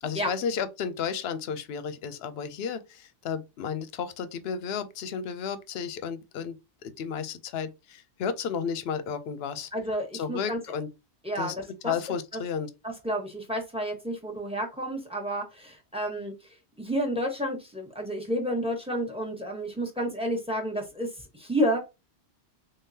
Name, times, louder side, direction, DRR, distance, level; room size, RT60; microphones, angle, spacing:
voice 1, 0.0-6.6 6.8-9.7 10.1-10.9 11.4-11.5 11.8-12.7, left 7 dB, 65° left, 0.8 m, -33 dB
voice 2, 9.7-10.6 11.2-11.9 12.8-16.3 16.8-21.1 21.3-21.8, equal, 5° right, 1.1 m, -30 dB
3.7 x 3.5 x 2.7 m
omnidirectional pair, 1.2 m